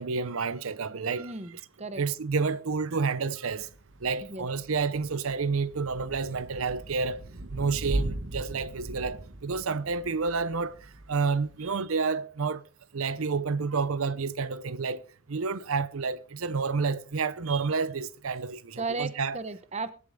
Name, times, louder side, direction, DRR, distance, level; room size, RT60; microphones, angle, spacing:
voice 1, 0.0-1.6 2.0-3.7 4.0-7.2 7.5-12.6 12.9-15.0 15.3-19.4, right 4 dB, 80° right, 0.7 m, -30 dB
voice 2, 1.2-2.0 4.2-4.5 18.8-19.9, right 3 dB, 30° right, 1.0 m, -35 dB
Thunder / Rain, 3.5-11.8, right 1 dB, 60° right, 1.3 m, -38 dB
22.5 x 8.6 x 3.7 m
head